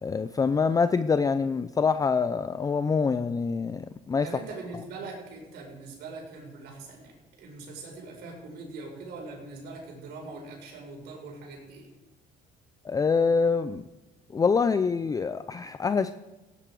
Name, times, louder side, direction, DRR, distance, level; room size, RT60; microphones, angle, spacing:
voice 1, 0.0-4.3 12.8-13.8 14.3-16.1, left 5 dB, 20° left, 12 dB, 0.4 m, -25 dB
voice 2, 4.2-7.1 7.4-11.9, right 3 dB, 80° right, 0 dB, 5.2 m, -42 dB
17.5 x 9.8 x 4.8 m, 1.1 s
cardioid pair, 110°, 17 cm